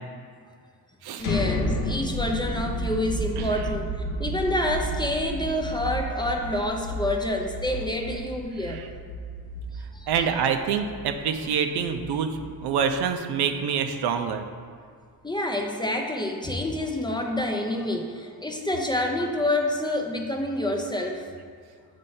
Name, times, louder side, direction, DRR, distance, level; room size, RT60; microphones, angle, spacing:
sound 1, 1.2-13.0, equal, 55° left, 0.7 m, -32 dB
voice 1, 1.2-8.8 9.7-10.1 15.2-21.2, left 1 dB, 10° left, 1 dB, 0.5 m, -28 dB
voice 2, 10.1-14.4, right 7 dB, 80° right, 6 dB, 0.6 m, -26 dB
6.9 x 3.3 x 5.5 m, 2.1 s
cardioid pair, 125°, 39 cm